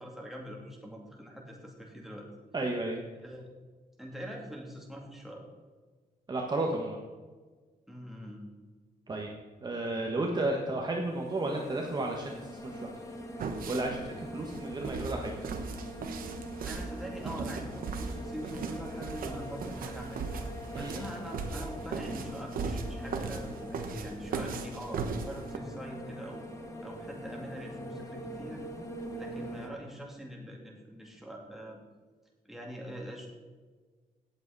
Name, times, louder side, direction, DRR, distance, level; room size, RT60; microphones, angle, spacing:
voice 1, 0.0-2.3 3.2-3.5 4.0-5.5 7.9-8.5 16.7-20.3 20.7-26.4 26.8-28.6 29.2-31.8 32.4-33.3, equal, ahead, -1 dB, 2.7 m, -43 dB
voice 2, 2.5-3.0 6.3-7.0 9.1-9.3 9.6-12.9 13.7-15.4 20.7-21.1, right 2 dB, 30° right, 1 dB, 1.3 m, -33 dB
sound 1, 11.0-29.7, equal, 20° left, 1.7 m, -43 dB
sound 2, 13.4-25.6, right 4 dB, 75° right, 1.2 m, -38 dB
17.5 x 7.7 x 4.1 m, 1.4 s
cardioid pair, 135°, 15 cm